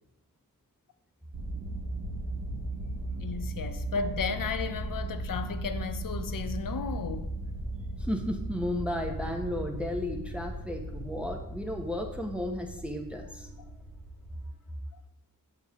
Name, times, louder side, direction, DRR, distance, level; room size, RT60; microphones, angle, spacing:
sound 1, 1.3-14.5, right 1 dB, 60° right, 1.4 m, -37 dB
sound 2, 1.8-11.4, equal, 85° right, 2.0 m, -46 dB
voice 1, 3.2-7.3, left 5 dB, 60° left, 0.7 m, -34 dB
voice 2, 8.0-13.9, left 1 dB, 5° right, 1.0 m, -34 dB
6.6 x 5.4 x 3.6 m
cardioid pair, 40°, 37 cm